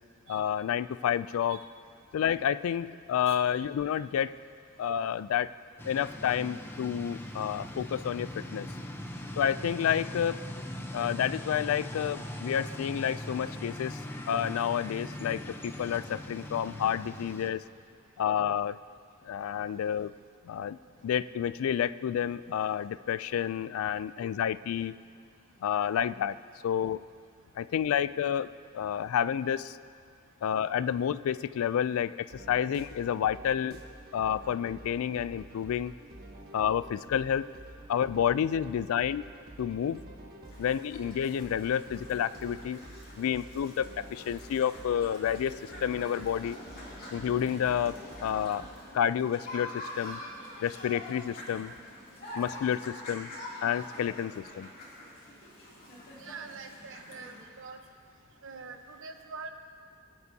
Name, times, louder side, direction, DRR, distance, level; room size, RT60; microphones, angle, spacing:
voice 1, 0.3-1.6 2.1-4.3 4.8-5.5 5.8-8.7 9.4-10.4 10.9-14.0 14.3-17.6 18.2-18.8 19.3-20.1 20.4-20.8 21.0-25.0 25.6-26.4 26.6-27.0 27.6-29.8 30.4-33.8 34.1-35.9 36.5-37.5 37.9-39.2 39.6-40.0 40.6-42.8 43.2-46.6 47.1-48.7 48.9-50.2 50.6-51.7 52.4-53.3 53.6-54.7, left 9 dB, 70° left, 16 dB, 0.3 m, -30 dB
sound 1, 5.8-17.5, left 1 dB, 10° left, 0.6 m, -41 dB
sound 2, 32.3-48.7, right 1 dB, 45° right, 1.2 m, -49 dB
sound 3, 40.4-57.4, left 1 dB, 45° left, 2.8 m, -46 dB
voice 2, 56.2-57.8 58.4-59.5, right 5 dB, 60° right, 5 dB, 0.9 m, -44 dB
21.0 x 9.5 x 2.7 m, 2.2 s
head